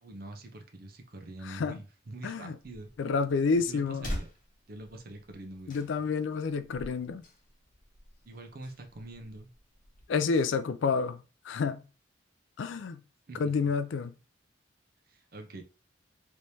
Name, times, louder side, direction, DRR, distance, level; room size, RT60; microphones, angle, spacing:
voice 1, 0.0-2.9 3.6-4.3 4.7-5.9 8.2-9.5 10.1-10.4 13.3-13.5 15.1-15.6, right 2 dB, 50° right, 0.6 m, -45 dB
voice 2, 1.5-1.8 2.2-2.6 3.0-4.1 5.7-7.2 10.1-11.2 11.4-11.8 12.6-13.0 13.4-14.1, left 5 dB, 70° left, 0.3 m, -29 dB
sound 1, 2.6-10.0, equal, 40° left, 0.9 m, -45 dB
3.3 x 3.1 x 2.7 m
head